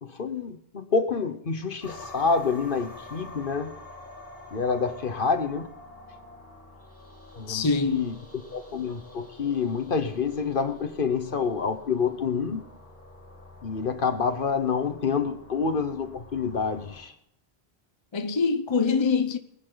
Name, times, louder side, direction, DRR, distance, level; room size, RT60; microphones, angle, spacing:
voice 1, 0.0-3.8 4.5-5.7 7.3-8.1 8.5-12.6 13.6-17.1, left 5 dB, 55° left, 1.2 m, -27 dB
sound 1, 1.8-17.0, left 2 dB, 30° right, 7.6 m, -47 dB
voice 2, 7.5-8.0 18.1-19.4, left 4 dB, 30° left, 0.8 m, -24 dB
22.0 x 10.0 x 3.9 m
omnidirectional pair, 1.1 m